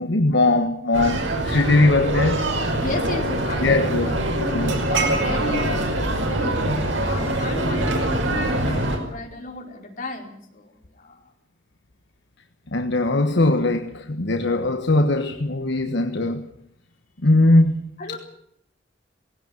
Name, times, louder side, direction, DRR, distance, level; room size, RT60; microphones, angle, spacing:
voice 1, 0.0-2.4 3.6-4.1 4.5-4.7 12.7-16.5 17.2-17.9, left 2 dB, 65° left, 1.4 m, -20 dB
sound 1, 0.9-9.0, right 1 dB, 80° right, 5.7 m, -23 dB
voice 2, 2.7-5.8 6.2-6.6 7.1-11.2 18.0-18.2, left 2 dB, 45° left, 4.8 m, -33 dB
19.5 x 17.0 x 9.3 m
head